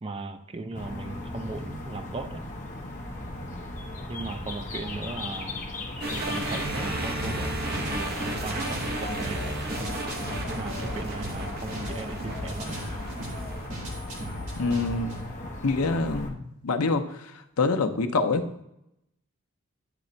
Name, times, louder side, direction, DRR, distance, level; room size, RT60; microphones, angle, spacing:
voice 1, 0.0-2.4 4.1-5.6 6.1-7.6 7.9-9.5 10.5-12.8, right 3 dB, 25° right, 8 dB, 0.4 m, -37 dB
sound 1, 0.7-16.3, left 1 dB, 35° left, 0.9 m, -38 dB
sound 2, 6.0-13.7, right 1 dB, 45° right, 0.9 m, -33 dB
sound 3, 7.2-15.2, left 1 dB, 70° right, 1.6 m, -38 dB
voice 2, 14.6-15.3 15.6-18.4, left 3 dB, 80° left, 7 dB, 0.6 m, -26 dB
9.1 x 3.2 x 3.9 m, 0.80 s
head